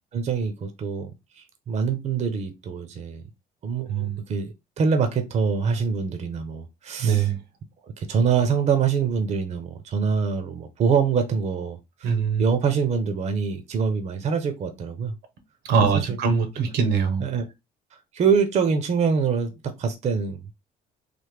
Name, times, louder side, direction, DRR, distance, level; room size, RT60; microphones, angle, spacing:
voice 1, 0.1-1.1 1.4-3.2 3.6-7.3 8.0-15.1 16.0-16.2 17.2-17.4 18.1-20.5, right 6 dB, 40° right, 0.6 m, -25 dB
voice 2, 3.9-4.2 7.0-7.4 12.0-12.4 15.6-17.2, right 6 dB, 80° right, 0.9 m, -22 dB
3.2 x 2.1 x 3.3 m
cardioid pair, 110°, 17 cm